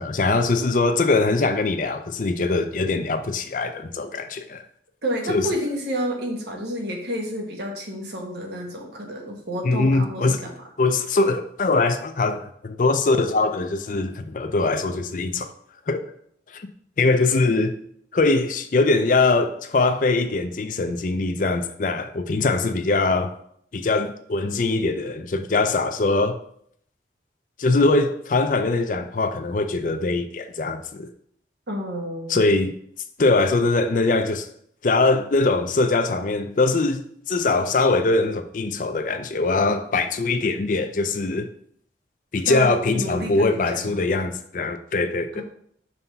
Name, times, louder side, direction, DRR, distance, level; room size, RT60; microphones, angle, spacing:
voice 1, 0.0-4.6 5.3-5.5 9.6-10.4 10.8-15.5 15.9-16.1 16.5-16.7 17.0-17.8 18.1-23.3 23.7-26.4 27.6-31.1 32.3-32.8 33.2-34.5 34.8-41.5 42.3-45.4, left 3 dB, 45° left, 0.5 m, -22 dB
voice 2, 5.0-10.5 31.7-32.4 42.4-43.9 45.3-45.4, equal, 70° right, 1.4 m, -30 dB
5.5 x 3.5 x 5.6 m
head